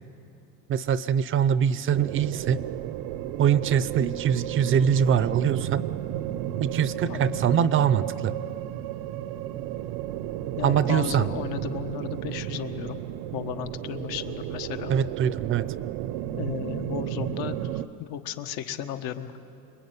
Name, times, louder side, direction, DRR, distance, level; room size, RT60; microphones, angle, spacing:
voice 1, 0.7-2.6 3.4-5.8 6.6-8.3 10.6-11.3 14.9-15.7, right 8 dB, 35° right, 16 dB, 0.5 m, -23 dB
sound 1, 1.9-17.9, right 12 dB, 90° right, 0.8 m, -33 dB
voice 2, 7.1-7.5 10.6-13.0 13.3-14.9 16.3-19.4, left 10 dB, 75° left, 7 dB, 1.6 m, -35 dB
27.0 x 22.0 x 9.5 m, 2.6 s
cardioid pair, 170°, 37 cm